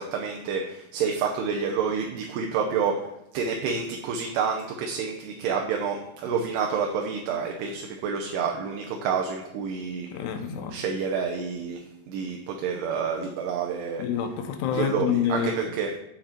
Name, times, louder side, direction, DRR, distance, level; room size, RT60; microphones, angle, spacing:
voice 1, 0.0-10.1 10.7-14.1 14.7-16.0, right 6 dB, 85° right, 2 dB, 3.0 m, -29 dB
voice 2, 10.1-10.7 14.0-15.5, left 8 dB, 90° left, 6 dB, 3.0 m, -27 dB
9.0 x 7.7 x 4.4 m, 0.86 s
omnidirectional pair, 4.7 m